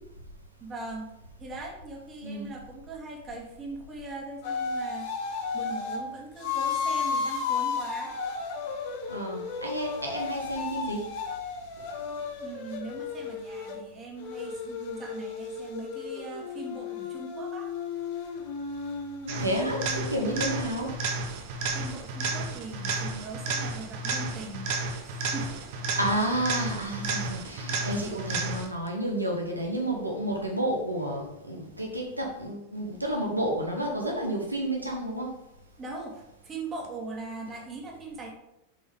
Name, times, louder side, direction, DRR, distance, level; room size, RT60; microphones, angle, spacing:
voice 1, 0.6-1.1 1.4-5.1 5.5-8.1 12.4-17.7 21.7-24.7 25.0-25.6 35.8-38.3, right 2 dB, 25° right, 0 dB, 1.8 m, -40 dB
sound 1, 4.4-6.0 6.4-13.8 14.2-20.6, left 5 dB, 50° left, 1.2 m, -34 dB
voice 2, 9.1-11.1 19.4-21.0 24.7-24.8 26.0-35.4, right 1 dB, 85° right, -1 dB, 1.2 m, -30 dB
sound 2, 19.3-28.9 36.8-36.9, right 3 dB, 50° right, 0.9 m, -32 dB
6.9 x 5.3 x 3.6 m, 0.85 s
figure-of-eight pair, 90°, 0 cm